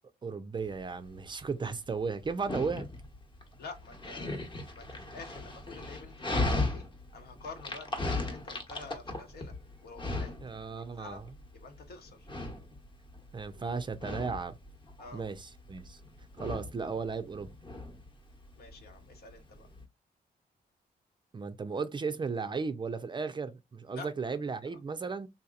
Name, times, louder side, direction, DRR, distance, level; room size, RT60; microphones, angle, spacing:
voice 1, 0.2-2.9 10.4-11.2 13.3-14.6 15.1-16.0 16.4-17.5 21.3-25.3, right 4 dB, 30° right, 0.4 m, -35 dB
Dog, 0.6-19.8, left 2 dB, 30° left, 1.0 m, -38 dB
voice 2, 3.6-4.4 4.7-6.9 7.1-9.5 9.8-10.3 10.7-12.3 15.0-15.2 18.6-19.7 23.9-24.1 24.7-24.8, left 4 dB, 70° left, 1.0 m, -48 dB
3.8 x 2.8 x 2.4 m
cardioid pair, 130°, 17 cm